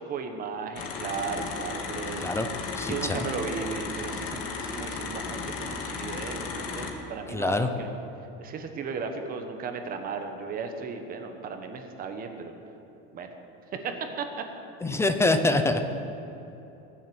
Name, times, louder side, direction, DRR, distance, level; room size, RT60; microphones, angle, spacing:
voice 1, 0.0-2.2 2.8-7.9 8.4-12.5 13.1-13.3 13.7-14.5, right 5 dB, 30° right, 5 dB, 1.2 m, -35 dB
sound 1, 0.8-6.9, left 4 dB, 50° left, 2.1 m, -35 dB
voice 2, 2.7-3.3 7.3-7.7 14.8-15.8, left 2 dB, 10° left, 8 dB, 0.5 m, -25 dB
21.0 x 7.6 x 8.7 m, 3.0 s
cardioid pair, 175°, 30 cm